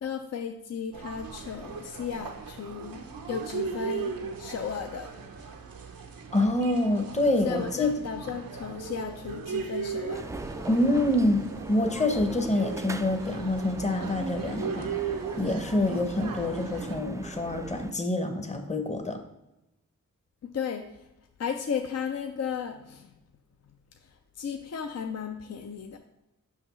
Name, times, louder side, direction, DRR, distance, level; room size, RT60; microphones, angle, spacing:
voice 1, 0.0-4.1 4.4-5.1 7.4-10.3 20.4-21.1 21.4-23.1 24.0-26.0, left 7 dB, 50° left, 5 dB, 0.5 m, -35 dB
sound 1, 0.9-17.0, right 6 dB, 80° right, 0.8 m, -38 dB
voice 2, 6.3-7.9 10.7-14.9 15.4-19.2, left 1 dB, 20° left, 5 dB, 0.8 m, -26 dB
sound 2, 10.1-17.9, right 2 dB, 10° right, 0.3 m, -40 dB
5.6 x 5.5 x 3.1 m, 0.92 s
cardioid pair, 50°, 34 cm